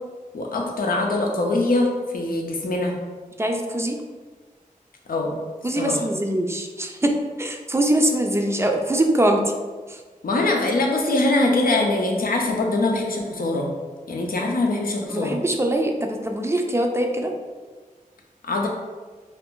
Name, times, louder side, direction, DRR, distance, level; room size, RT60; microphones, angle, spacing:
voice 1, 0.3-3.0 5.1-5.4 5.8-6.0 10.2-13.7 14.1-15.4 18.4-18.7, left 2 dB, 85° left, 1 dB, 0.5 m, -23 dB
voice 2, 3.4-4.0 5.6-9.5 9.9-10.0 15.1-17.3, right 1 dB, 20° right, 3 dB, 0.4 m, -23 dB
2.5 x 2.5 x 3.6 m, 1.4 s
wide cardioid pair, 75°, 15 cm